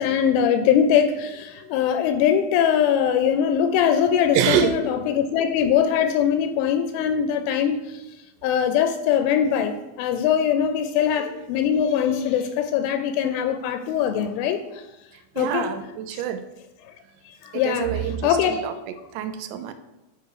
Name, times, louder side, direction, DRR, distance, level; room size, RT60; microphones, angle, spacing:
voice 1, 0.0-8.0 8.4-14.9 15.4-15.7 16.1-16.2 17.3-17.9 18.2-18.7, left 8 dB, 85° left, 8 dB, 3.0 m, -22 dB
voice 2, 4.3-4.8 15.4-16.4 17.5-18.7 19.1-19.7, right 9 dB, 85° right, 9 dB, 2.5 m, -25 dB
6.8 x 6.6 x 4.8 m, 0.98 s
omnidirectional pair, 5.5 m